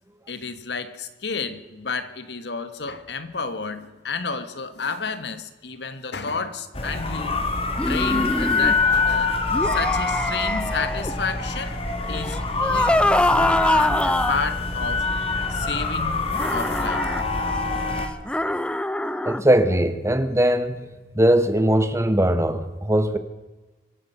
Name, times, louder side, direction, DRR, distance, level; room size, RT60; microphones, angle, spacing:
voice 1, 0.3-7.4 7.9-9.3 9.7-11.8 12.1-15.0 15.5-16.3 16.5-17.0, left 4 dB, 70° left, 11 dB, 1.3 m, -31 dB
sound 1, 6.7-18.1, left 3 dB, 35° left, 1.8 m, -25 dB
sound 2, 7.8-8.7 9.5-11.1 12.1-14.4 16.3-17.2 18.3-19.4, left 1 dB, 5° left, 0.5 m, -24 dB
voice 2, 19.2-23.2, right 1 dB, 15° right, 11 dB, 1.0 m, -20 dB
24.5 x 8.6 x 6.8 m, 1.2 s
head